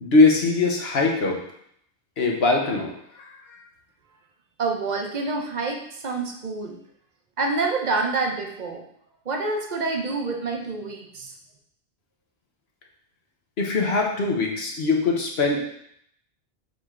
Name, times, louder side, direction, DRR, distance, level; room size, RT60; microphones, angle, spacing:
voice 1, 0.0-1.4 2.2-2.9 3.2-3.3 13.6-15.7, left 3 dB, 75° left, 0 dB, 1.3 m, -21 dB
voice 2, 4.6-6.8 7.4-8.8 9.3-11.3, right 3 dB, 45° right, 3 dB, 0.9 m, -27 dB
7.9 x 3.3 x 3.7 m, 0.71 s
omnidirectional pair, 1.1 m